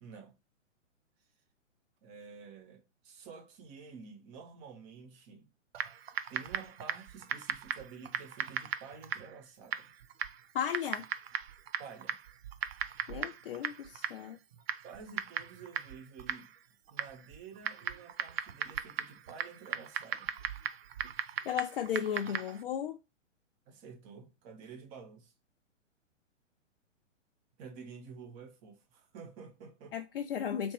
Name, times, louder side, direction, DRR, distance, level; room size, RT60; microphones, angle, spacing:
voice 1, 0.0-0.3 2.0-5.5 6.3-9.9 11.8-12.2 14.8-16.5 16.9-20.3 23.7-25.3 27.6-29.9, right 5 dB, 20° right, 0.7 m, -50 dB
Typing, 5.7-22.6, right 9 dB, 55° right, 0.5 m, -39 dB
voice 2, 10.5-11.0 13.1-14.4 21.4-23.0 29.9-30.7, left 9 dB, 50° left, 0.4 m, -35 dB
4.3 x 2.9 x 3.0 m
figure-of-eight pair, 125°, 38 cm